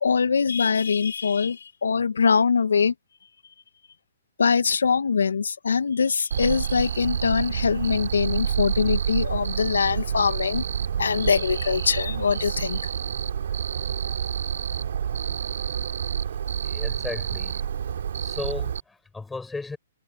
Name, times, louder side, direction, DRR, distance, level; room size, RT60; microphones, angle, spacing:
voice 1, 0.0-2.9 4.4-10.7 11.0-12.8, left 6 dB, 75° left, 1.7 m, -23 dB
Cricket, 6.3-18.8, right 8 dB, 65° right, 2.7 m, -28 dB
voice 2, 16.6-17.7 18.2-19.8, left 3 dB, 5° left, 6.1 m, -35 dB
hypercardioid pair, 125°, 0 cm